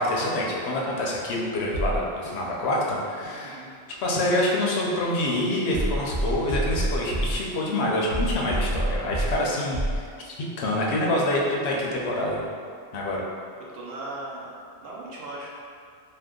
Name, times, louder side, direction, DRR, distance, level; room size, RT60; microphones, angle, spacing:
voice 1, 0.0-3.6 4.0-12.4 12.9-13.2, left 1 dB, 75° left, -3 dB, 0.8 m, -26 dB
sound 1, 1.7-2.4 3.2-3.4 4.2-4.4 5.2-5.4 5.7-7.4 8.1-9.4 9.7-10.0, right 1 dB, 85° right, 1.0 m, -27 dB
voice 2, 13.7-15.5, right 2 dB, 65° right, -5 dB, 0.8 m, -38 dB
2.7 x 2.2 x 3.5 m, 2.2 s
omnidirectional pair, 1.1 m